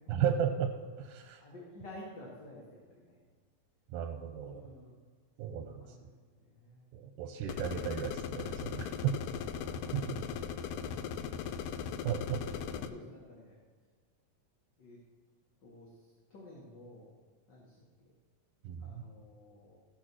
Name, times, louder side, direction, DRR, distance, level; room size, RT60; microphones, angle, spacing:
voice 1, 0.1-0.7 1.0-1.4 3.9-4.6 5.4-5.7 6.9-9.1 9.9-10.0 12.0-12.4 18.6-19.0, right 8 dB, 85° right, 5 dB, 2.2 m, -34 dB
voice 2, 1.4-3.2 4.3-5.0 5.5-6.1 6.4-6.9 8.9-12.3 12.5-13.6 14.8-15.0 15.6-17.1 17.5-17.8 18.8-19.8, left 1 dB, 40° left, -3 dB, 1.9 m, -53 dB
sound 1, 7.5-12.9, left 7 dB, 85° left, 2.2 m, -38 dB
15.5 x 6.3 x 6.2 m, 1.5 s
omnidirectional pair, 3.5 m